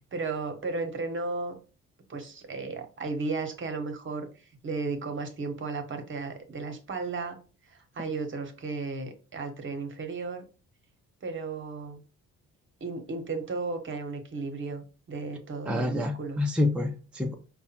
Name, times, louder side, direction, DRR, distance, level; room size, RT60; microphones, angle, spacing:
voice 1, 0.1-1.6 2.1-7.4 7.6-10.4 11.2-12.0 12.8-16.4, right 3 dB, 40° right, 6 dB, 1.1 m, -34 dB
voice 2, 15.7-17.3, left 2 dB, 5° right, 2 dB, 0.6 m, -28 dB
4.7 x 2.3 x 4.3 m, 0.35 s
cardioid pair, 90°, 30 cm